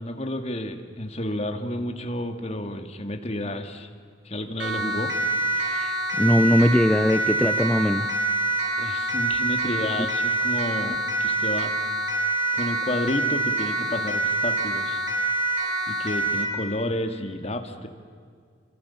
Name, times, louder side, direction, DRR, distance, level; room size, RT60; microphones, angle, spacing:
voice 1, 0.0-3.9 4.2-5.2 8.8-11.7 12.5-15.0 15.9-17.9, left 1 dB, 35° left, 6 dB, 2.2 m, -31 dB
Siren, 4.6-16.6, right 2 dB, 75° right, 4.6 m, -26 dB
voice 2, 5.6-8.1, equal, 5° left, 7 dB, 0.7 m, -21 dB
28.5 x 26.5 x 7.2 m, 2.1 s
head